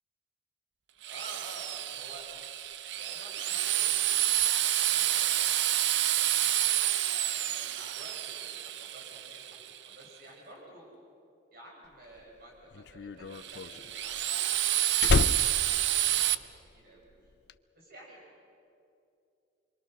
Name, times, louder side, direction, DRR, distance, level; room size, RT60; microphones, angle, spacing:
voice 1, 1.0-2.2 3.0-5.6 6.1-9.5 9.8-10.9 11.5-16.5 16.7-17.3 17.7-18.2, right 1 dB, 55° right, -2 dB, 6.0 m, -52 dB
Drill, 1.0-10.0 13.4-16.3, right 13 dB, 70° right, 0.6 m, -29 dB
Slam, 12.0-16.8 17.1-17.5, left 4 dB, 65° left, 0.5 m, -30 dB
27.0 x 23.5 x 6.4 m, 2.6 s
head